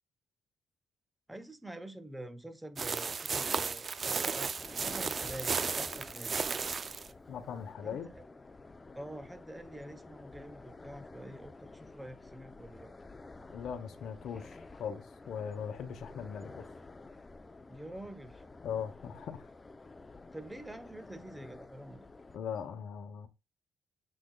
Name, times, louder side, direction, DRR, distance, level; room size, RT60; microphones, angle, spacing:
voice 1, 1.3-6.4 7.8-8.2 8.9-12.9 17.7-18.4 20.3-22.1, right 1 dB, 10° right, 1.0 m, -47 dB
sound 1, 2.8-7.1, right 5 dB, 40° right, 0.6 m, -34 dB
sound 2, 4.2-22.4, left 3 dB, 25° left, 0.8 m, -51 dB
voice 2, 7.3-8.1 13.5-16.7 18.6-19.5 22.3-23.3, left 7 dB, 70° left, 1.1 m, -40 dB
7.7 x 6.2 x 2.4 m
cardioid pair, 90°, 0 cm